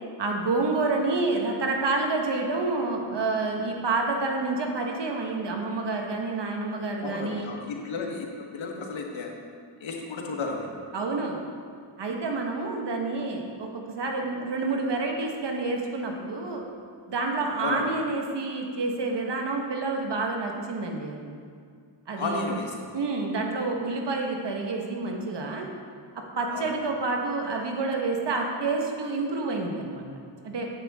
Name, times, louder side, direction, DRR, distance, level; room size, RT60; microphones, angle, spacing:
voice 1, 0.2-7.5 10.9-11.4 12.0-16.6 17.1-21.4 22.1-22.4 22.9-25.7 26.4-30.1 30.4-30.7, right 3 dB, 60° right, 1 dB, 1.5 m, -28 dB
voice 2, 7.0-9.3 9.8-10.7 17.6-17.8 22.1-22.8 26.5-26.7, left 3 dB, 75° left, 1 dB, 1.5 m, -33 dB
9.6 x 8.2 x 3.7 m, 2.2 s
cardioid pair, 60°, 47 cm